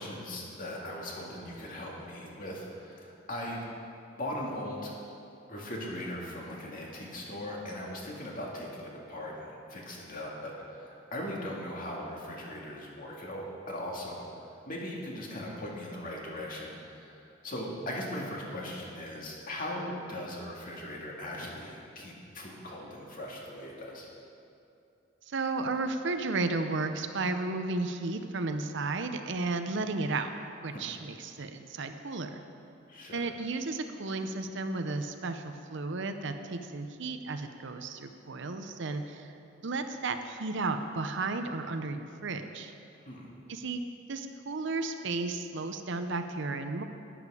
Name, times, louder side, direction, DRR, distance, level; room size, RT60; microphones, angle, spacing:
voice 1, 0.0-3.6 4.2-4.9 5.5-14.2 14.7-24.1 30.7-30.9 32.9-33.2 43.0-43.3, left 1 dB, 45° left, -3 dB, 2.2 m, -39 dB
voice 2, 25.3-30.3 30.6-32.4 33.1-39.3 39.6-42.7 43.5-43.8 44.1-46.8, right 3 dB, 65° right, 7 dB, 0.7 m, -33 dB
12.0 x 10.5 x 4.9 m, 2.6 s
head